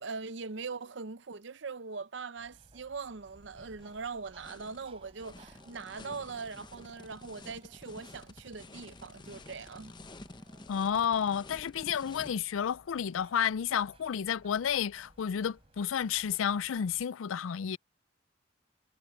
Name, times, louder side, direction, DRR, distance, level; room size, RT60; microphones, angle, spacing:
voice 1, 0.0-9.9, right 4 dB, 70° right, 0.7 m, -41 dB
sound 1, 2.4-17.1, right 1 dB, 30° right, 3.5 m, -61 dB
sound 2, 3.2-12.3, left 2 dB, 20° left, 0.7 m, -51 dB
voice 2, 10.7-17.8, left 8 dB, 90° left, 0.4 m, -31 dB
head